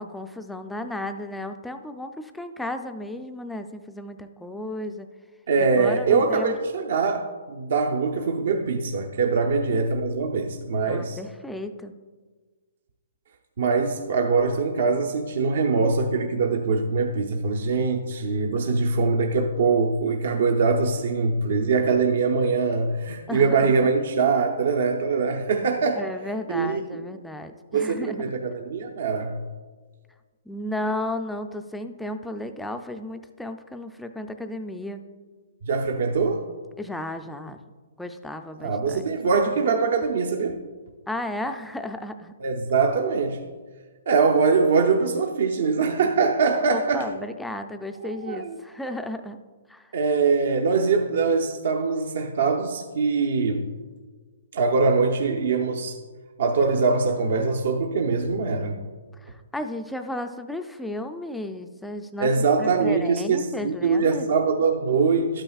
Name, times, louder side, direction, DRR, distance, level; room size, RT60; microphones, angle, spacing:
voice 1, 0.0-5.1 5.6-6.6 10.9-11.9 23.3-23.9 26.0-28.4 30.5-35.0 36.8-37.6 38.0-39.0 41.1-42.3 46.7-49.4 49.7-49.9 59.2-64.3, left 1 dB, ahead, 6 dB, 0.3 m, -34 dB
voice 2, 5.5-11.2 13.6-26.0 26.5-26.8 27.7-29.4 35.6-36.5 38.6-40.6 42.4-43.5 44.1-47.1 48.0-48.6 49.9-53.7 54.5-56.0 56.4-58.8 62.2-65.4, right 4 dB, 60° right, 3 dB, 0.7 m, -23 dB
12.0 x 8.8 x 2.4 m, 1.4 s
hypercardioid pair, 165°, 0 cm